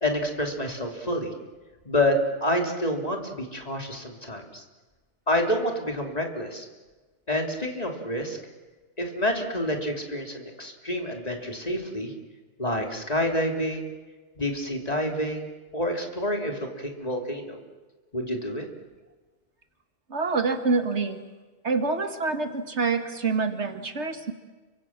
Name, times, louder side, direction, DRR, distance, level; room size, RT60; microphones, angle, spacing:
voice 1, 0.0-1.3 1.8-4.6 5.3-6.7 7.3-8.4 9.0-12.1 12.6-13.9 14.4-17.6 18.1-18.7, left 1 dB, 30° left, 2 dB, 3.4 m, -28 dB
voice 2, 20.1-21.2 21.6-24.3, right 4 dB, 65° right, 7 dB, 2.2 m, -26 dB
29.5 x 25.0 x 7.5 m, 1.3 s
omnidirectional pair, 1.2 m